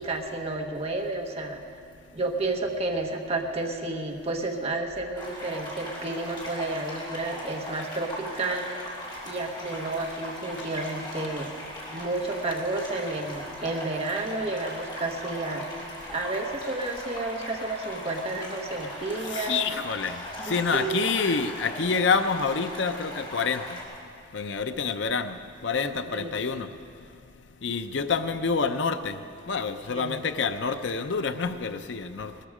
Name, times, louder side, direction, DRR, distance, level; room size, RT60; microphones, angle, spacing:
voice 1, 0.0-1.6 2.1-8.8 9.2-11.5 11.9-15.8 16.1-19.7 20.4-21.0 26.1-26.4 29.8-30.2, right 2 dB, 30° right, 2 dB, 1.2 m, -31 dB
sound 1, 5.2-23.8, equal, 25° left, 3.3 m, -39 dB
voice 2, 19.3-20.2 20.5-23.8 24.3-25.4 25.6-26.7 27.6-29.2 29.5-32.3, left 5 dB, 60° left, 10 dB, 0.6 m, -27 dB
19.5 x 13.5 x 4.9 m, 2.4 s
head